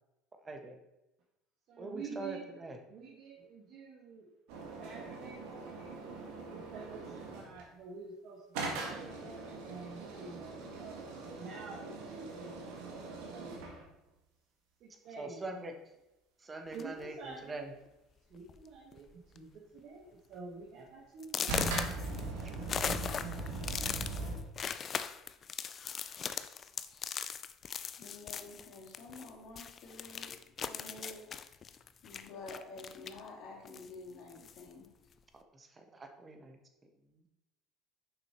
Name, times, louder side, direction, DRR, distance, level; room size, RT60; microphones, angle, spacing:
voice 1, 0.4-0.8 1.8-2.8 15.2-15.7 16.4-17.7 35.3-36.6 37.1-37.2, right 2 dB, 25° right, 5 dB, 1.3 m, -43 dB
voice 2, 1.7-4.3 4.8-6.0 6.5-11.0 11.3-12.8 13.3-13.8 14.8-15.7 16.7-17.7 18.3-21.6, right 4 dB, 60° right, -4 dB, 1.6 m, -49 dB
sound 1, 4.5-7.6 8.5-13.8 21.5-24.4, right 3 dB, 75° right, 1.7 m, -41 dB
sound 2, 16.7-17.0 17.9-18.0 18.3-18.6 18.9-19.4 19.8-19.9 20.4-20.5 21.2-29.3 29.6-33.3 33.7-34.7, left 7 dB, 40° left, 0.5 m, -39 dB
voice 3, 27.9-31.3 32.0-34.9, left 3 dB, 60° left, -2 dB, 2.7 m, -49 dB
6.8 x 5.5 x 4.4 m, 0.96 s
supercardioid pair, 85°, 0 cm